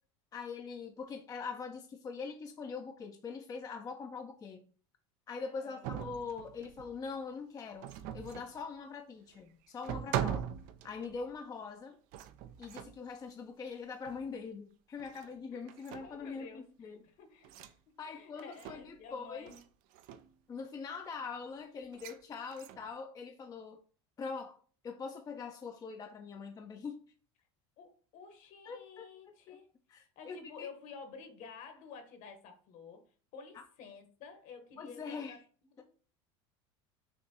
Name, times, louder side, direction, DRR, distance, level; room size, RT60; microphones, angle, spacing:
voice 1, 0.3-4.7 5.3-10.5 10.8-12.0 12.6-17.0 18.0-19.5 20.5-23.8 24.2-24.6 24.8-27.0 28.7-29.1 29.5-29.6 29.9-30.7 34.8-35.4, left 5 dB, 25° left, 0.4 m, -43 dB
voice 2, 5.5-6.1 15.5-15.6 16.0-19.6 27.8-35.4 35.7-35.9, left 5 dB, 60° left, 1.2 m, -51 dB
sound 1, 5.8-7.0 7.8-8.6 9.3-9.4 9.8-11.3 12.1-13.1 14.0-14.3 15.0-15.4 15.7-16.3 17.4-17.7 18.4-19.0 19.5-19.7 19.9-20.3 21.9-22.2 22.5-22.9, right 10 dB, 60° right, 0.4 m, -41 dB
5.8 x 2.6 x 2.8 m
supercardioid pair, 95°, 15 cm